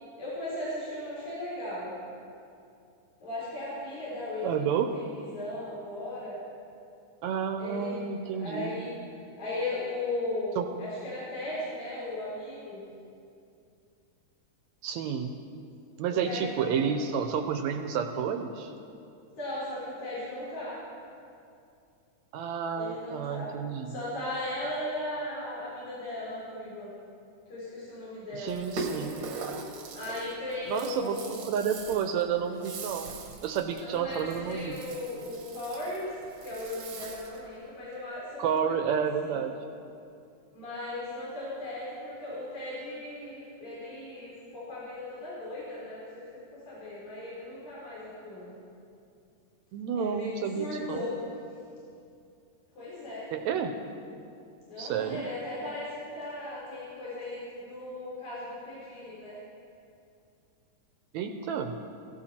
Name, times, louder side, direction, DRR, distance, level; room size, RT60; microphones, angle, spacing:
voice 1, 0.2-1.9 3.2-6.4 7.6-8.0 8.4-8.9 9.4-12.8 16.1-17.2 19.4-20.8 22.8-23.5 23.9-26.9 27.5-28.6 29.9-31.5 33.8-36.1 36.4-39.4 40.5-46.2 46.7-48.6 50.0-50.3 50.6-51.2 52.8-53.3 54.7-59.4, left 1 dB, 70° left, -9 dB, 5.7 m, -37 dB
voice 2, 4.4-4.9 7.2-8.9 10.6-10.7 14.8-15.4 16.0-18.7 22.3-23.9 28.3-29.2 30.7-33.1 33.4-34.8 38.4-39.5 49.7-51.1 53.3-53.8 54.8-55.3 61.1-61.8, right 7 dB, 75° right, 6 dB, 1.8 m, -30 dB
Rattle (instrument), 28.5-37.5, right 3 dB, 55° right, 1.4 m, -41 dB
16.5 x 16.0 x 4.4 m, 2.5 s
omnidirectional pair, 3.6 m